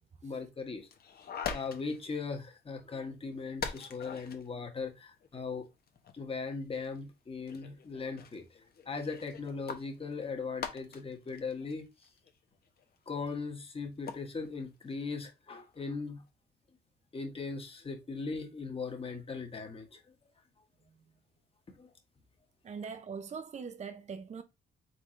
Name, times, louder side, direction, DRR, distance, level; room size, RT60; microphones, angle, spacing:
voice 1, 0.2-0.9 1.5-5.7 6.1-8.6 8.8-11.8 13.1-16.2 17.1-20.0 21.8-21.9, left 4 dB, 30° left, 1.4 m, -39 dB
sound 1, 0.8-2.2 2.4-2.5 2.8-2.9 3.6-4.5 5.1-6.2 6.7-7.0 7.5-13.4 13.8-14.6 14.9-15.0 15.5-15.8, left 6 dB, 50° left, 0.9 m, -43 dB
voice 2, 22.6-24.4, right 5 dB, 35° right, 0.7 m, -41 dB
4.3 x 3.7 x 3.1 m
cardioid pair, 90°, 20 cm